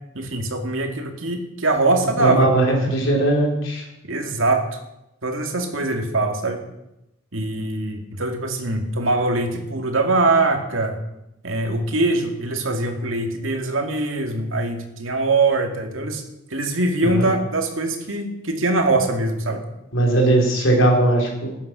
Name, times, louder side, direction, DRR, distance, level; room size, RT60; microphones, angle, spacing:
voice 1, 0.1-2.5 4.1-4.6 5.2-6.6 7.3-11.0 11.4-16.2 16.5-19.6, right 2 dB, 70° right, 4 dB, 2.3 m, -22 dB
voice 2, 2.2-3.8 17.0-17.3 19.9-21.5, right 2 dB, 65° left, 0 dB, 4.1 m, -19 dB
14.5 x 11.0 x 6.1 m, 0.89 s
head